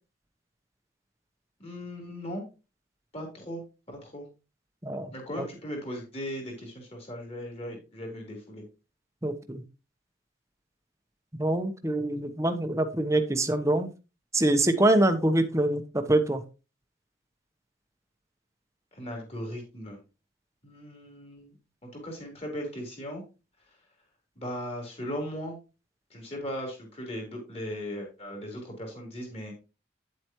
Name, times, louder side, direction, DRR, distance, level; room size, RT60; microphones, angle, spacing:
voice 1, 1.6-2.4 3.1-4.3 5.1-8.6 18.9-20.0 20.6-21.6 21.8-23.2 24.4-25.6 26.1-29.5, equal, 30° left, 1 dB, 3.6 m, -38 dB
voice 2, 9.2-9.6 11.4-13.9 14.3-16.4, right 1 dB, 15° right, 8 dB, 0.9 m, -25 dB
9.6 x 8.0 x 3.0 m, 0.29 s
head